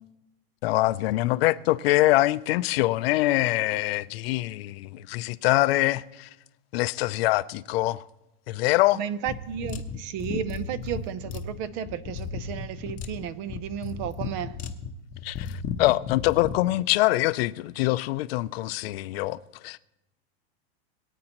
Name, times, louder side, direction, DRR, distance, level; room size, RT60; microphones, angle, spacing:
voice 1, 0.6-6.3 6.7-8.0 8.5-9.0 15.2-19.4 19.6-19.8, left 18 dB, 65° left, 0.5 m, -24 dB
voice 2, 8.9-14.5, right 9 dB, 45° right, 0.6 m, -33 dB
sound 1, 9.3-16.6, left 6 dB, 25° left, 0.8 m, -35 dB
21.5 x 8.9 x 3.0 m
supercardioid pair, 150°, 32 cm